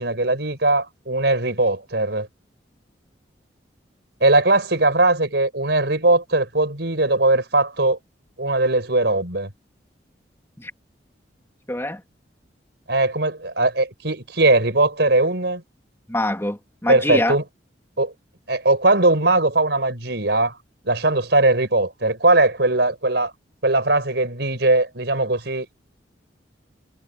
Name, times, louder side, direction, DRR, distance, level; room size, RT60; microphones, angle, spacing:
voice 1, 0.0-2.3 4.2-8.0 8.4-9.5 12.9-15.6 16.9-17.4 18.0-18.1 18.5-20.6 20.9-23.3 23.6-25.7, right 2 dB, 65° right, 5.4 m, -19 dB
voice 2, 11.7-12.0 16.1-17.3, left 1 dB, 15° left, 2.7 m, -24 dB
head